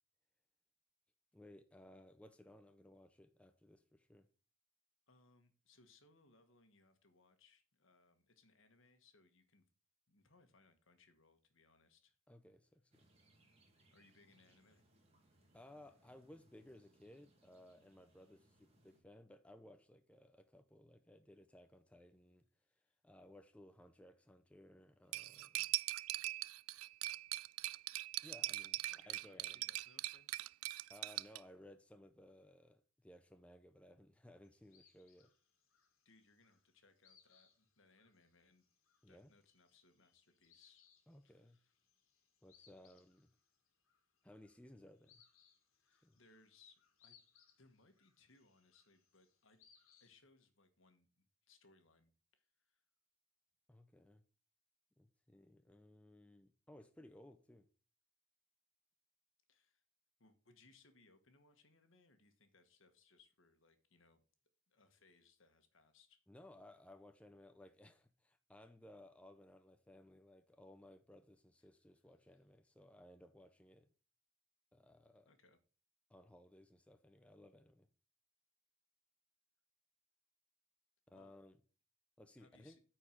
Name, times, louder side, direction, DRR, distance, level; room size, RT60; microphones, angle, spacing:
voice 1, 1.3-4.3 12.3-13.0 15.5-22.4 23.0-25.7 28.2-28.8 29.1-29.6 30.9-35.3 39.0-39.3 41.1-41.6 42.4-43.3 44.2-45.2 46.0-46.2 53.7-54.2 55.0-57.7 66.3-73.9 74.7-75.3 76.1-77.9 81.1-81.5 82.2-82.8, left 1 dB, 5° left, 0.6 m, -60 dB
voice 2, 5.1-9.6 10.1-12.2 13.9-14.8 22.8-22.9 28.9-30.3 36.0-38.6 39.1-40.9 41.2-41.7 45.7-47.2 47.6-49.6 50.0-52.8 59.5-59.8 60.2-64.2 64.7-66.2 71.6-71.7 75.3-75.6 81.1-81.3 82.4-82.8, left 3 dB, 65° left, 1.4 m, -69 dB
sound 1, 12.9-19.0, right 1 dB, 30° right, 2.3 m, -72 dB
Cutlery silverware, 25.1-31.4, right 18 dB, 85° right, 0.3 m, -41 dB
sound 2, 34.4-50.1, left 7 dB, 80° left, 1.7 m, -72 dB
9.3 x 4.6 x 5.7 m
head